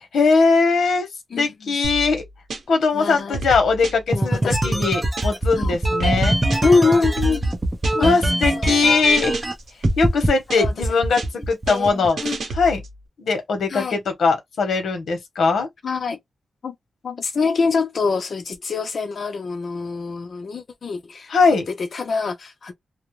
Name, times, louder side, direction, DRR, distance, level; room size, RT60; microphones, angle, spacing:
voice 1, 0.1-1.1 1.4-2.2 2.7-6.4 8.0-9.4 10.0-12.2 12.5-12.8 13.2-15.7 21.3-21.6, left 4 dB, 80° left, 0.9 m, -20 dB
voice 2, 1.3-1.8 2.9-3.4 4.1-4.8 5.6-5.8 6.6-7.5 7.9-8.2 8.6-9.0 10.6-10.7 11.7-11.9 12.2-12.4 13.7-14.0 15.8-16.2 16.6-16.7 17.0-21.3 21.8-22.7, left 4 dB, 45° left, 0.6 m, -24 dB
sound 1, 1.8-2.9 3.2-5.5 5.8-8.2 8.5-8.9 9.2-10.9 11.2-13.0, right 1 dB, 70° right, 0.8 m, -31 dB
sound 2, 4.1-9.5 9.8-10.3 10.6-12.1, right 1 dB, 15° right, 0.6 m, -22 dB
2.3 x 2.0 x 3.0 m
wide cardioid pair, 170°, 0 cm